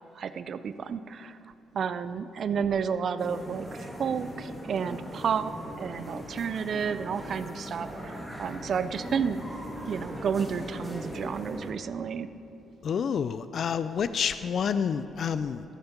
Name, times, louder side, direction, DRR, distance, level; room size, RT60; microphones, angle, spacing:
voice 1, 0.2-1.4 1.7-9.4 9.9-12.3, right 6 dB, 55° right, 13 dB, 0.4 m, -31 dB
sound 1, 3.2-11.7, equal, 5° left, 2.0 m, -40 dB
voice 2, 12.8-15.6, left 7 dB, 55° left, 13 dB, 0.3 m, -28 dB
13.0 x 7.2 x 5.2 m, 2.7 s
cardioid pair, 90°, 0 cm